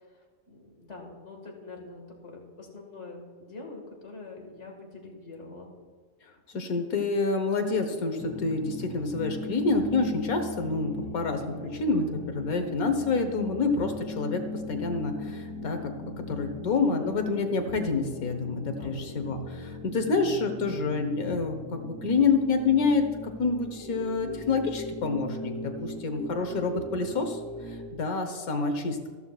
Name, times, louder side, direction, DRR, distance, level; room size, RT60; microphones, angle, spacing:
voice 1, 0.1-5.7 18.7-19.1, left 3 dB, 55° left, 1 dB, 2.2 m, -45 dB
voice 2, 6.5-14.4 14.7-23.0 23.4-27.4 27.7-29.1, left 4 dB, 90° left, 6 dB, 1.6 m, -28 dB
sound 1, 8.2-27.9, left 1 dB, 15° left, 1.9 m, -39 dB
14.0 x 13.5 x 2.4 m, 1.5 s
omnidirectional pair, 1.5 m